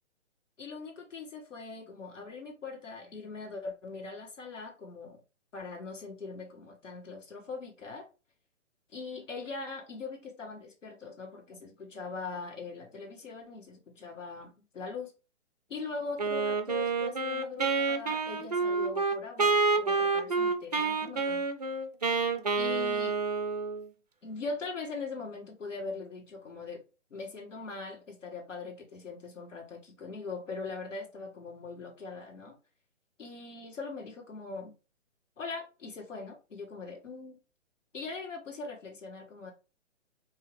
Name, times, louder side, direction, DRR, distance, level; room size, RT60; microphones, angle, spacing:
voice 1, 0.6-5.2 5.5-8.1 8.9-15.1 15.7-21.5 22.6-23.2 24.2-26.8 27.1-32.6 33.2-34.7 35.4-37.4 37.9-39.5, left 4 dB, 90° left, 1.9 m, -41 dB
Wind instrument woodwind instrument, 16.2-23.9, right 4 dB, 35° right, 0.4 m, -28 dB
4.7 x 2.8 x 3.2 m
hypercardioid pair, 165°, 36 cm